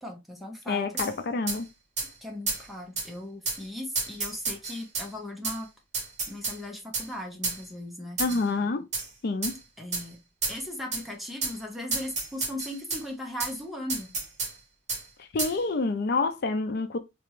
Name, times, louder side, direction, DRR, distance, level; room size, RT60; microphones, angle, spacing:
voice 1, 0.0-1.0 2.2-5.7 6.3-8.2 9.8-10.2 10.5-14.1, left 1 dB, ahead, 0.9 m, -38 dB
voice 2, 0.7-1.7 8.2-8.9 9.2-9.5 15.2-17.0, left 3 dB, 60° left, 0.5 m, -28 dB
Hi-Hat Metallic Rhytm Techno, 1.0-1.1 1.5-1.6 2.0-2.1 2.5-2.6 3.0-3.1 3.5-3.6 4.0-5.1 5.4-5.6 5.9-6.6 6.9-7.1 7.4-7.6 8.2-8.5 8.9-9.1 9.4-9.6 9.9-10.1 10.4-10.6 10.9-11.0 11.4-11.6 11.9-13.0 13.4-13.5 13.9-14.5 14.9-15.0 15.4-15.6, right 3 dB, 40° right, 1.8 m, -30 dB
3.3 x 3.0 x 3.1 m
head